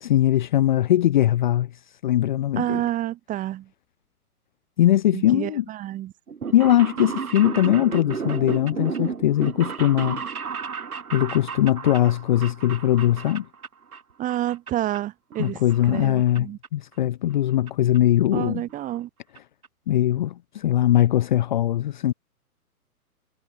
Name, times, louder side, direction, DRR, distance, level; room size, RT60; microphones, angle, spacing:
voice 1, 0.0-1.7 2.0-2.8 4.8-5.7 6.5-10.2 11.1-13.5 15.4-18.6 19.9-22.1, left 13 dB, 30° left, 0.8 m, -21 dB
voice 2, 2.6-3.7 5.1-6.1 14.2-15.6 15.9-16.6 18.3-19.1, right 13 dB, 15° right, 2.5 m, -29 dB
sound 1, 6.3-14.0 14.3-15.0 15.3-16.4 16.6-16.7 17.7-17.8 17.9-18.0 18.3-18.4 18.7-19.0 19.4-19.5 19.6-19.7, right 6 dB, 70° right, 1.4 m, -33 dB
figure-of-eight pair, 120°, 45 cm